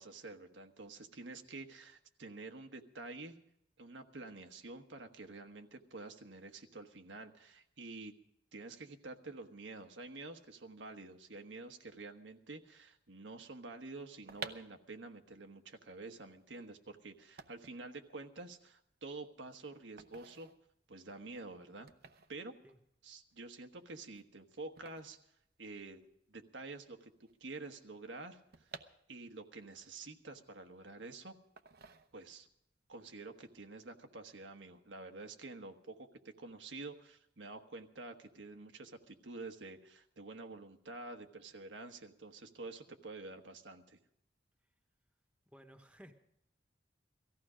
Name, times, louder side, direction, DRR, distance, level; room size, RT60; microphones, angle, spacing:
voice 1, 0.0-3.4 3.8-8.1 8.5-20.5 20.9-21.9 22.3-22.5 23.0-25.3 25.6-26.0 26.3-28.7 29.1-31.4 32.1-32.5 32.9-44.0, right 3 dB, 80° right, 5 dB, 1.3 m, -49 dB
sound 1, 14.0-26.2 26.4-26.5 26.7-29.6 30.0-31.0 31.6-32.6 32.9-33.2, right 5 dB, 60° right, 0.9 m, -53 dB
voice 2, 45.5-46.1, equal, 5° right, 6 dB, 1.3 m, -56 dB
18.5 x 14.5 x 5.0 m, 0.73 s
head